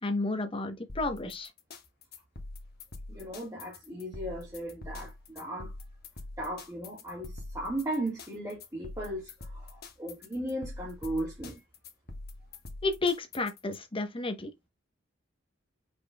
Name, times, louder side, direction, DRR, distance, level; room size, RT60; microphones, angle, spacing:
voice 1, 0.0-1.5 12.8-14.7, left 3 dB, 30° left, 1.0 m, -32 dB
sound 1, 0.9-13.8, left 2 dB, 55° left, 1.3 m, -44 dB
voice 2, 3.1-5.7 6.4-11.6, right 1 dB, 15° right, 1.8 m, -36 dB
5.4 x 4.3 x 2.3 m
head